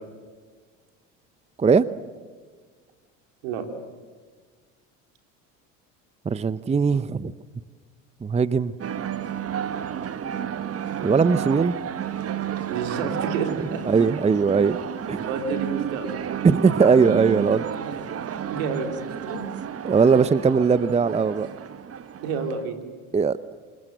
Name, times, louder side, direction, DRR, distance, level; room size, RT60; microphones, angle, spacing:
voice 1, 6.3-7.3 8.2-8.7 11.0-11.7 13.9-14.8 15.1-15.2 16.4-17.6 19.8-21.5 23.1-23.4, right 5 dB, 15° right, 16 dB, 0.7 m, -19 dB
sound 1, 8.8-22.6, right 9 dB, 35° right, 1.4 m, -31 dB
voice 2, 12.7-13.8 15.1-16.1 17.8-18.1 18.5-18.9 19.2-19.4 22.2-22.8, right 5 dB, 75° right, 5 dB, 3.6 m, -30 dB
27.0 x 22.0 x 7.8 m, 1.5 s
hypercardioid pair, 80°, 39 cm